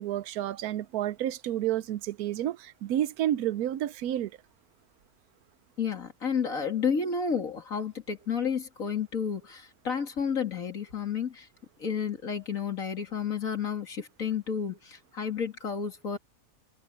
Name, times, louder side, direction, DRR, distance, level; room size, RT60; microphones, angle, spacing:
voice 1, 0.0-4.4, right 12 dB, 90° right, 1.2 m, -30 dB
voice 2, 5.8-11.5 11.8-16.2, left 6 dB, 65° left, 3.0 m, -31 dB
omnidirectional pair, 1.5 m